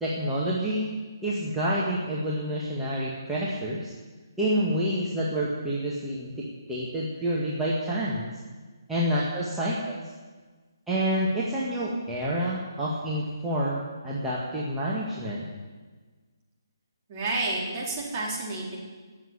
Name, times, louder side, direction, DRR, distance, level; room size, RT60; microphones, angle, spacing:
voice 1, 0.0-0.9 1.2-3.9 4.4-8.3 8.9-10.0 10.9-15.4, equal, 5° right, -8 dB, 1.9 m, -28 dB
voice 2, 17.1-18.8, right 2 dB, 30° right, -4 dB, 4.1 m, -30 dB
17.5 x 7.6 x 9.9 m, 1.4 s
figure-of-eight pair, 145°, 2 cm